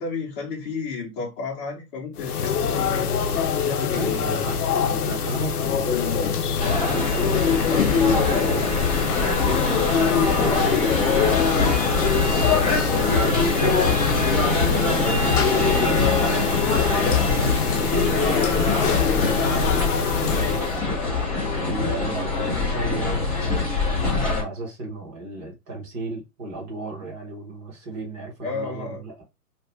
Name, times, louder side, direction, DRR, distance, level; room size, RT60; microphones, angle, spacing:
voice 1, 0.0-3.1 3.6-4.2 7.7-9.0 9.3-10.7 28.4-29.0, left 4 dB, 35° left, 0.9 m, -32 dB
sound 1, 2.2-20.8, left 6 dB, 75° left, 0.7 m, -24 dB
voice 2, 3.9-8.7 9.3-10.9 11.2-21.3 21.6-23.7 24.0-29.2, right 2 dB, 20° right, 1.1 m, -35 dB
sound 2, 6.6-24.4, left 3 dB, 5° left, 0.7 m, -23 dB
2.9 x 2.5 x 3.3 m
hypercardioid pair, 145°, 46 cm